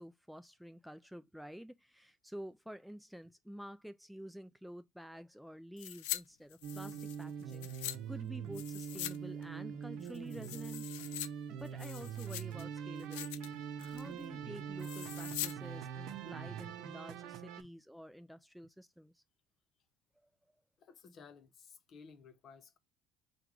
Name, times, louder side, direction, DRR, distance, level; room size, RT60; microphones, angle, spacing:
voice 1, 0.0-11.2 11.6-19.2 20.2-20.6, equal, ahead, 0.4 m, -50 dB
sound 1, 5.8-6.2 6.5-8.0 8.5-9.2 9.4-9.5 10.0-11.3 11.7-12.6 13.0-13.5 13.8-14.1 14.8-15.5 15.8-15.9, left 14 dB, 85° left, 0.3 m, -43 dB
sound 2, 6.6-17.6, right 7 dB, 70° right, 0.6 m, -43 dB
voice 2, 20.8-22.8, left 5 dB, 50° left, 0.8 m, -56 dB
4.6 x 2.3 x 3.7 m
supercardioid pair, 90°, 0 cm